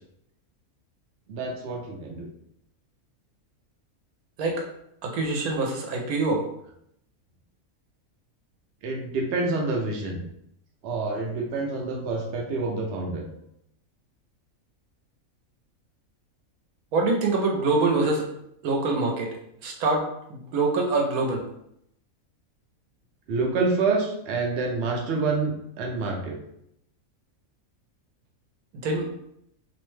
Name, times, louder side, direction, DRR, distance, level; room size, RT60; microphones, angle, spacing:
voice 1, 1.3-2.3 8.8-10.2 10.8-13.2 23.3-26.4, right 3 dB, 60° right, 0 dB, 0.7 m, -27 dB
voice 2, 5.0-6.4 16.9-18.2 18.6-19.3 19.6-21.4 28.8-29.1, right 3 dB, 85° right, 1 dB, 1.1 m, -25 dB
2.8 x 2.1 x 3.1 m, 0.76 s
omnidirectional pair, 1.5 m